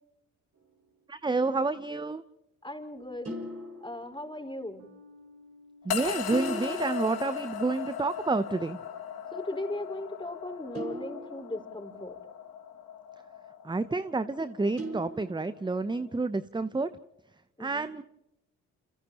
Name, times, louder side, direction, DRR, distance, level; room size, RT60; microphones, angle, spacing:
sound 1, 0.6-1.1 3.2-4.8 6.3-8.2 10.7-12.4 14.8-15.9, right 1 dB, 40° right, 5.6 m, -41 dB
voice 1, 1.1-2.2 5.8-8.8 13.6-16.9 17.6-18.0, right 3 dB, 10° right, 13 dB, 0.7 m, -29 dB
voice 2, 2.6-3.4 3.8-4.8 9.3-12.2 17.6-17.9, left 1 dB, 10° left, 4 dB, 5.0 m, -38 dB
sound 2, 4.8-11.5, left 2 dB, 85° right, 1.7 m, -60 dB
sound 3, 5.9-16.2, left 8 dB, 65° left, 3.1 m, -38 dB
30.0 x 29.0 x 3.0 m, 0.90 s
hypercardioid pair, 45°, 40 cm